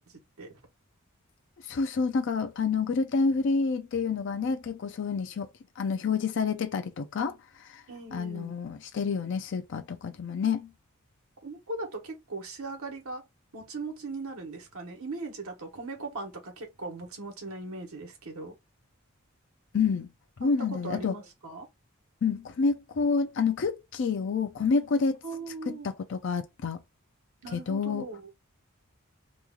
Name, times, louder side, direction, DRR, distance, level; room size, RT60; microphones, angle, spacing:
voice 1, 0.1-0.6 7.9-8.6 11.4-13.2 13.5-18.6 20.4-21.7 25.2-25.9 27.4-28.3, right 3 dB, 75° right, 1.2 m, -39 dB
voice 2, 1.7-5.5 5.8-7.8 8.1-10.7 19.7-20.1 20.4-21.2 22.2-25.2 25.7-26.8 27.5-28.0, left 5 dB, 55° left, 0.4 m, -28 dB
3.0 x 2.3 x 3.6 m
head